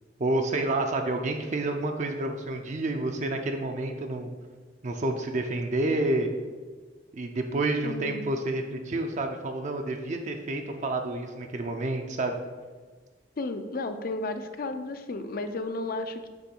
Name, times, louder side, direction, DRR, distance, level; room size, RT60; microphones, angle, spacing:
voice 1, 0.2-4.3 4.8-6.3 7.1-12.3, right 2 dB, 40° right, 4 dB, 0.4 m, -29 dB
voice 2, 7.8-8.2 13.4-16.3, left 2 dB, 50° left, 9 dB, 0.5 m, -33 dB
7.7 x 3.1 x 4.5 m, 1.4 s
head